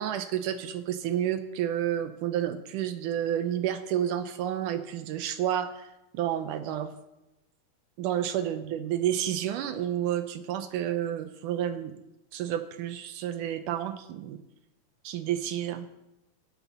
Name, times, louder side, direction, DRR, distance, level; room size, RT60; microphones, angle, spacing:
voice 1, 0.0-7.0 8.0-12.0 12.3-14.4 15.0-15.9, right 10 dB, 75° right, 10 dB, 2.2 m, -30 dB
16.5 x 8.4 x 5.9 m, 0.92 s
omnidirectional pair, 3.9 m